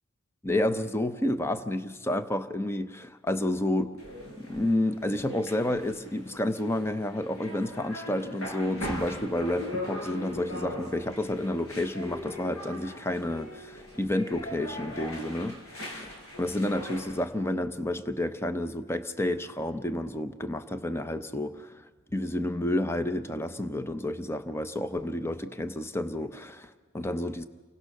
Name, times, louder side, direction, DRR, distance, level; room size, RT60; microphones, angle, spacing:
voice 1, 0.4-3.9 4.4-16.1 16.4-27.5, left 1 dB, 10° left, 10 dB, 0.7 m, -30 dB
sound 1, 4.0-17.2, left 1 dB, 85° left, 6.4 m, -40 dB
29.5 x 23.5 x 6.6 m, 1.4 s
head